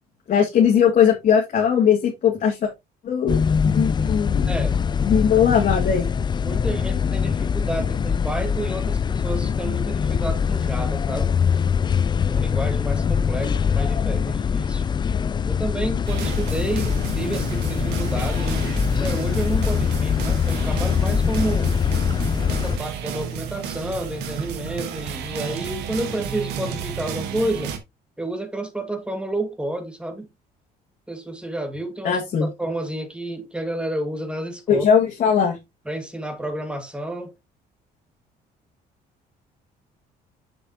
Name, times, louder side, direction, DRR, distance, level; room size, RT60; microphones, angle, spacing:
voice 1, 0.3-2.7 3.0-4.5 5.0-6.1 13.4-13.6 32.0-32.5 34.7-35.6, left 7 dB, 55° left, 2.5 m, -19 dB
sound 1, 3.3-22.8, left 6 dB, 25° left, 0.4 m, -23 dB
voice 2, 4.5-4.8 5.3-5.5 6.4-11.3 12.3-14.9 15.5-21.7 22.5-27.8 28.2-30.3 31.1-34.8 35.9-37.3, right 1 dB, 5° right, 2.0 m, -30 dB
sound 2, 16.1-27.8, right 7 dB, 85° right, 1.5 m, -32 dB
7.0 x 6.9 x 2.9 m
cardioid pair, 110°, 17 cm